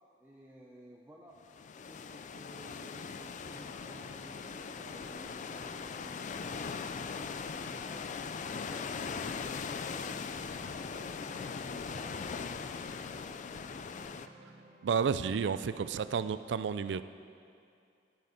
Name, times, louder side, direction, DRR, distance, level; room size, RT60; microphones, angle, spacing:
voice 1, 0.2-1.4 1.9-8.2 8.6-13.4, right 1 dB, 10° right, -3 dB, 0.6 m, -55 dB
sound 1, 1.4-14.3, left 5 dB, 45° left, 0.3 m, -40 dB
sound 2, 3.4-16.3, right 2 dB, 50° right, 1.0 m, -57 dB
voice 2, 14.8-17.0, right 6 dB, 70° right, 13 dB, 0.4 m, -31 dB
12.0 x 8.6 x 4.4 m, 2.5 s
head